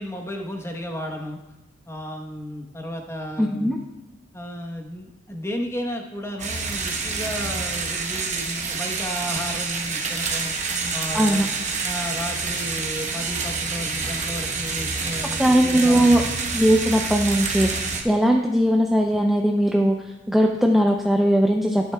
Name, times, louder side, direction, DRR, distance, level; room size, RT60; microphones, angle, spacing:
voice 1, 0.0-1.4 1.9-3.8 4.3-10.5 10.9-11.5 11.8-16.2, equal, 15° left, 1 dB, 1.0 m, -33 dB
voice 2, 3.4-3.8 11.1-11.5 15.4-16.2 16.5-21.9, equal, ahead, 1 dB, 0.5 m, -19 dB
sound 1, 6.4-18.0, right 4 dB, 40° right, 1.1 m, -27 dB
12.5 x 10.0 x 2.3 m, 1.0 s
head